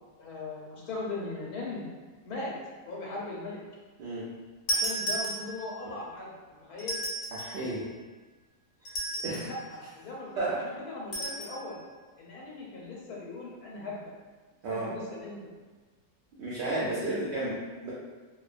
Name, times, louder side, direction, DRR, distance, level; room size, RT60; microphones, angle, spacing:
voice 1, 0.2-1.9 2.2-2.6 2.9-3.6 4.7-7.0 9.4-11.8 12.2-14.1 14.7-15.5 16.9-17.2, left 2 dB, 90° left, -4 dB, 1.2 m, -39 dB
voice 2, 4.0-4.4 7.3-7.9 9.2-9.5 10.4-10.7 14.6-14.9 16.4-17.9, right 2 dB, 65° right, -7 dB, 0.7 m, -32 dB
sound 1, 4.7-5.8 6.8-7.6 8.9-9.6 11.1-11.6, right 1 dB, 60° left, 0.9 m, -33 dB
2.7 x 2.1 x 2.4 m, 1.4 s
omnidirectional pair, 1.6 m